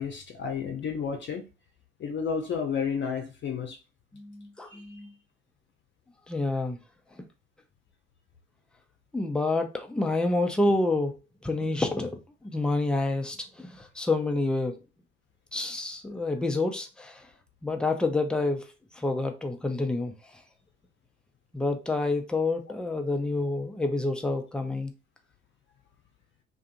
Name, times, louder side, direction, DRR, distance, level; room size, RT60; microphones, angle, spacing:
voice 1, 0.0-1.4 2.0-3.8 4.7-4.8, left 6 dB, 35° left, 0.7 m, -31 dB
voice 2, 4.1-5.1 6.3-6.8 9.1-11.1 11.4-12.1 12.4-14.8 15.5-17.3 17.6-18.7 19.0-20.1 21.5-24.9, left 2 dB, 5° left, 0.4 m, -28 dB
2.5 x 2.5 x 2.5 m
figure-of-eight pair, 60°, 33 cm